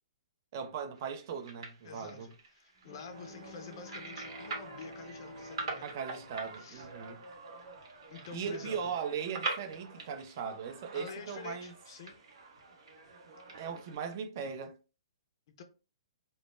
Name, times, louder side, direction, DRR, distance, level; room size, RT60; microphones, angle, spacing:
voice 1, 0.5-2.3 5.8-7.2 8.3-11.7 13.6-14.7, right 6 dB, 35° right, 0.3 m, -38 dB
sound 1, 0.9-14.2, right 3 dB, 55° right, 0.7 m, -45 dB
voice 2, 1.8-6.3 6.6-6.9 8.1-8.9 10.9-12.2 15.6-15.7, left 6 dB, 45° left, 0.4 m, -48 dB
Bowed string instrument, 2.8-7.7, left 1 dB, 15° right, 0.8 m, -51 dB
sound 2, 3.1-14.0, right 3 dB, 90° right, 0.7 m, -53 dB
2.1 x 2.0 x 3.0 m
hypercardioid pair, 165°, 3 cm